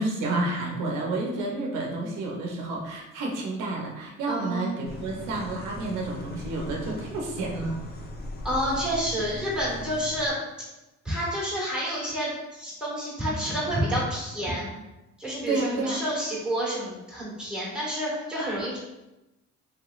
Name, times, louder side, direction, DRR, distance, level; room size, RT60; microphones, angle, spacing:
voice 1, 0.0-7.8 15.5-16.0, right 2 dB, 90° right, -1 dB, 0.7 m, -30 dB
voice 2, 4.3-4.7 8.4-10.4 11.0-14.8 15.2-18.8, equal, 5° right, -7 dB, 1.5 m, -29 dB
sound 1, 4.8-10.3, left 1 dB, 35° left, 0.6 m, -39 dB
3.3 x 3.0 x 2.4 m, 0.99 s
cardioid pair, 90°, 30 cm